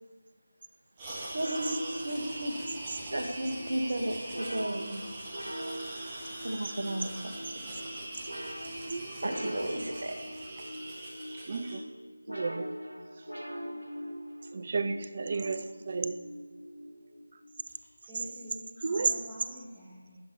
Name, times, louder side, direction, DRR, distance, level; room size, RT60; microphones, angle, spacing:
sound 1, 1.0-11.8, right 1 dB, 20° right, 1.4 m, -42 dB
voice 1, 1.3-2.6 3.0-5.0 6.4-7.6 8.2-8.3 8.6-8.7 9.2-10.2, right 1 dB, 55° right, 1.3 m, -34 dB
sound 2, 1.4-17.6, equal, 85° right, 1.2 m, -43 dB
voice 2, 8.9-9.2 11.5-11.8 12.3-12.7 14.5-16.3 18.8-19.2, right 4 dB, 35° right, 0.5 m, -32 dB
voice 3, 15.3-15.7 18.1-20.2, equal, 5° right, 1.3 m, -47 dB
10.5 x 4.5 x 5.4 m
figure-of-eight pair, 160°, 0 cm